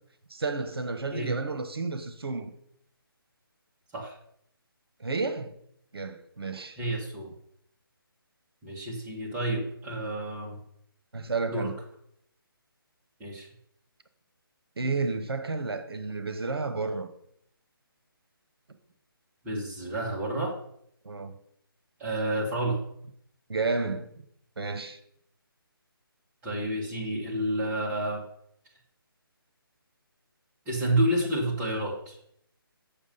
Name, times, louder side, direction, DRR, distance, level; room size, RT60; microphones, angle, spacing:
voice 1, 0.3-2.5 5.0-5.5 5.9-6.8 11.1-11.8 14.8-17.1 21.0-21.4 23.5-24.1 24.6-25.0, right 3 dB, 85° right, 1.0 m, -31 dB
voice 2, 6.8-7.3 8.6-10.6 11.5-11.7 13.2-13.5 19.4-20.6 22.0-22.8 26.4-28.2 30.7-32.3, right 1 dB, 15° right, 1.9 m, -29 dB
7.3 x 6.9 x 5.5 m
figure-of-eight pair, 160°, 12 cm